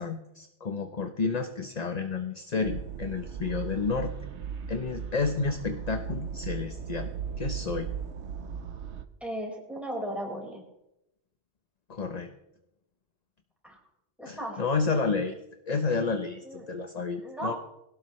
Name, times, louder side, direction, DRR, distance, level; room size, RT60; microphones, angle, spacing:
voice 1, 0.0-4.1 4.7-7.1 7.4-7.9 11.9-12.3 14.2-15.4 15.7-17.5, left 4 dB, 40° left, 7 dB, 0.9 m, -30 dB
sound 1, 2.6-9.0, right 7 dB, 75° right, 1.1 m, -37 dB
voice 2, 9.2-10.6 13.6-13.8 14.2-14.6 16.4-16.6 17.2-17.6, right 1 dB, ahead, -1 dB, 4.6 m, -35 dB
21.0 x 17.5 x 3.1 m, 0.88 s
omnidirectional pair, 1.2 m